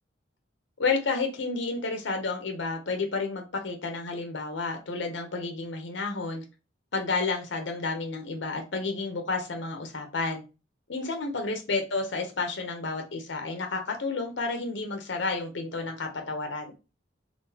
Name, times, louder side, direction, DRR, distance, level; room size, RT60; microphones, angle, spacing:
voice 1, 0.8-6.4 6.9-10.4 10.9-16.7, left 3 dB, 70° left, 0.7 m, -31 dB
3.8 x 2.3 x 2.7 m
head